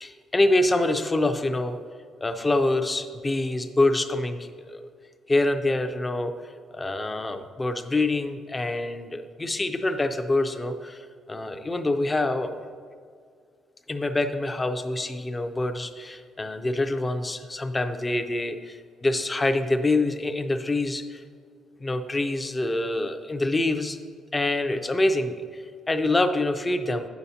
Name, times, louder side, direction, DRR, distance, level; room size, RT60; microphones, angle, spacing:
voice 1, 0.0-1.8 2.2-4.9 5.3-6.3 6.7-12.5 13.9-21.2 21.8-24.0 24.3-27.1, left 2 dB, 15° left, 8 dB, 0.4 m, -26 dB
9.0 x 6.9 x 2.8 m, 2.1 s
cardioid pair, 135°, 0 cm